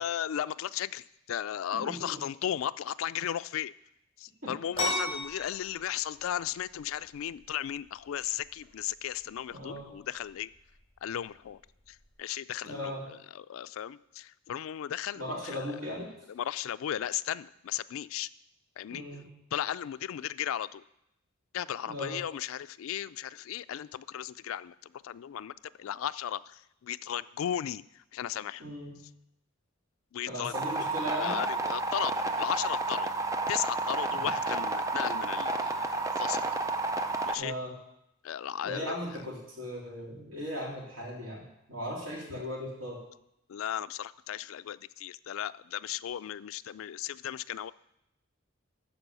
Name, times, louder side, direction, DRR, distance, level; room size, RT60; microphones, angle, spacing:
voice 1, 0.0-3.7 4.2-10.5 11.0-11.6 11.9-15.7 16.3-18.3 18.8-19.0 19.5-20.8 21.5-28.6 30.1-33.1 33.5-36.4 37.2-37.5 38.2-39.2 43.5-47.7, left 10 dB, 80° left, 15 dB, 0.3 m, -36 dB
voice 2, 1.8-2.2 4.4-4.5 9.5-9.9 12.6-13.0 15.1-16.1 18.9-19.3 21.9-22.2 28.6-29.0 30.3-31.4 34.1-34.3 37.4-37.7 38.6-43.0, equal, 70° right, -4 dB, 3.5 m, -37 dB
sound 1, 4.7-12.1, left 1 dB, 30° left, 3.9 m, -39 dB
sound 2, 30.5-37.3, right 2 dB, 15° right, 0.6 m, -31 dB
13.0 x 4.8 x 6.8 m, 0.81 s
head